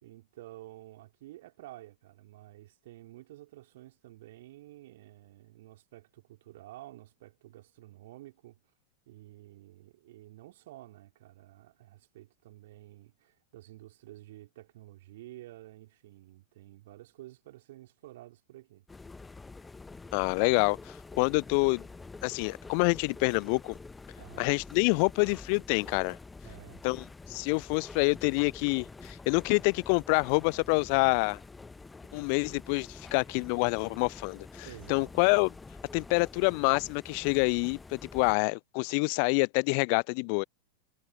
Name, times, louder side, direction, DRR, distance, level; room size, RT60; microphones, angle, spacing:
voice 1, 0.0-8.6 9.1-18.9 24.2-24.5 26.4-26.8 34.6-35.1, right 16 dB, 55° right, 3.1 m, -51 dB
sound 1, 18.9-38.4, left 3 dB, 10° left, 0.8 m, -47 dB
voice 2, 20.1-20.8 21.2-21.9 22.2-23.7 24.4-26.2 26.8-31.4 32.1-35.5 35.9-40.4, left 40 dB or more, 45° left, 0.5 m, -27 dB
figure-of-eight pair, 90°, 0 cm